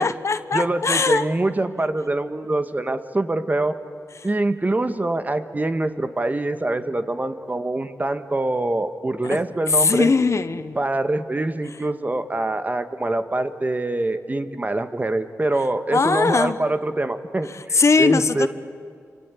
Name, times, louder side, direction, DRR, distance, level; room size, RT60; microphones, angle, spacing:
voice 1, 0.0-1.3 9.2-9.4 9.7-10.8 15.9-16.6 17.7-18.5, left 4 dB, 55° left, 12 dB, 1.1 m, -20 dB
voice 2, 0.5-3.8 4.2-10.1 10.7-18.5, right 2 dB, 30° right, 9 dB, 1.6 m, -24 dB
26.5 x 26.0 x 8.5 m, 2.2 s
cardioid pair, 70°, 6 cm